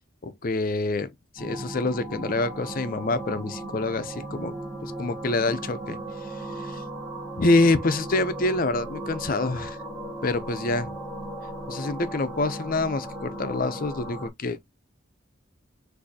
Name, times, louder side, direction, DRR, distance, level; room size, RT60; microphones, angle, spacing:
voice 1, 0.2-6.8 7.4-9.8 10.2-10.9 11.7-14.6, left 2 dB, 45° left, 0.6 m, -26 dB
sound 1, 1.4-14.3, right 1 dB, 20° right, 2.1 m, -36 dB
6.3 x 2.7 x 2.7 m
head